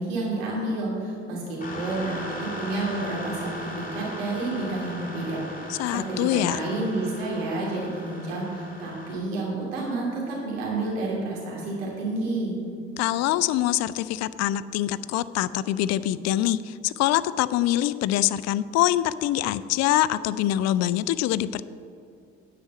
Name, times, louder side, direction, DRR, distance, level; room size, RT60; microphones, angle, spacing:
voice 1, 0.0-6.2 6.4-12.6, right 2 dB, 85° right, -4 dB, 2.6 m, -30 dB
sound 1, 1.6-9.2, left 1 dB, 30° left, 2.5 m, -38 dB
voice 2, 5.7-6.6 13.0-21.6, left 13 dB, 60° left, 16 dB, 0.4 m, -24 dB
9.6 x 5.0 x 8.0 m, 2.5 s
hypercardioid pair, 50°, 29 cm